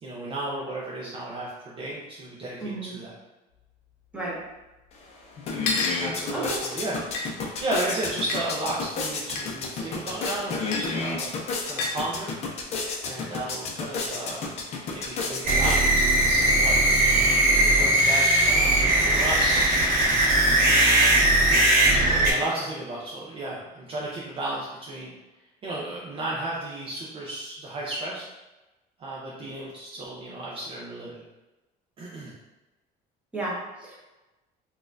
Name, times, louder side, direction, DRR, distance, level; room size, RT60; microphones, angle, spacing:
voice 1, 0.0-3.1 6.0-7.3 7.6-12.3 13.0-14.5 14.9-17.0 17.6-19.8 20.1-20.4 21.9-25.1 25.6-28.3 29.0-31.2 32.0-32.3, right 1 dB, 30° right, -5 dB, 0.4 m, -34 dB
voice 2, 2.6-3.0 4.1-4.4 6.3-6.6 33.3-34.0, right 2 dB, 5° right, -7 dB, 0.9 m, -32 dB
sound 1, 3.6-3.7 3.9-4.0 4.9-5.0 5.6-6.0 7.1-7.3 8.3-8.4 9.3-9.5 10.7-10.9 11.8-12.0, left 3 dB, 75° left, 0.7 m, -28 dB
sound 2, 4.9-5.0 5.3-16.2, left 3 dB, 40° left, 0.5 m, -32 dB
sound 3, 15.4-22.3, right 1 dB, 50° right, 1.5 m, -20 dB
4.1 x 2.3 x 2.5 m, 1.1 s
cardioid pair, 160°, 17 cm